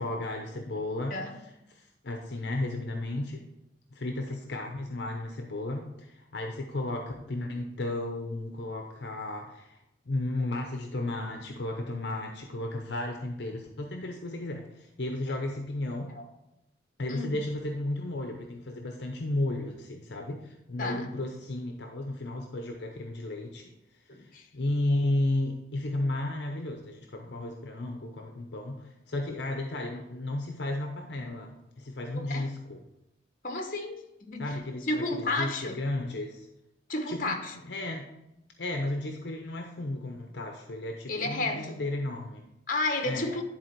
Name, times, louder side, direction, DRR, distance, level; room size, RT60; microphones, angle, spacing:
voice 1, 0.0-1.2 1.7-3.4 3.9-9.8 10.1-16.1 17.0-23.7 24.2-24.3 24.5-32.8 34.4-36.5 37.1-37.4 37.6-38.1 38.6-42.5 43.0-43.3, left 1 dB, 65° left, 3 dB, 0.7 m, -33 dB
voice 2, 17.1-17.4 20.8-21.1 24.1-24.5 24.9-25.1 32.1-32.5 33.4-34.6 34.9-35.8 36.9-37.6 41.1-41.8 42.7-43.4, left 2 dB, 45° left, 4 dB, 1.0 m, -32 dB
10.5 x 4.1 x 4.5 m, 0.87 s
head